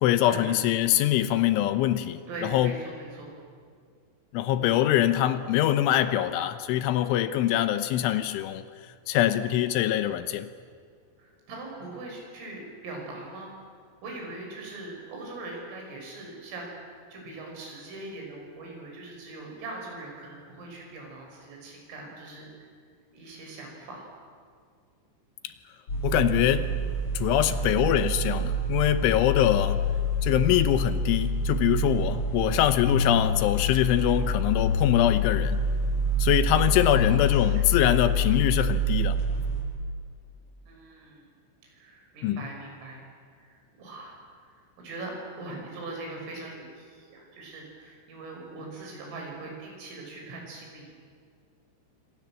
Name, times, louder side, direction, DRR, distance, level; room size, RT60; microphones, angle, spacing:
voice 1, 0.0-2.7 4.3-8.6 9.1-10.5 25.4-25.5 26.0-26.7 27.1-29.9 30.2-35.6 36.2-39.2 42.2-42.4, left 12 dB, 75° left, 11 dB, 3.1 m, -24 dB
voice 2, 2.3-3.3 9.4-10.0 11.2-13.6 14.0-22.7 23.1-24.1 27.5-27.7 32.5-32.7 34.0-34.2 36.9-37.7 40.7-41.3 41.7-43.0 43.4-44.2 44.5-45.1 45.4-50.9, right 2 dB, 80° right, 0 dB, 8.8 m, -41 dB
sound 1, 25.9-39.6, left 1 dB, 30° left, 7.9 m, -27 dB
27.0 x 26.0 x 7.6 m, 2.1 s
omnidirectional pair, 5.8 m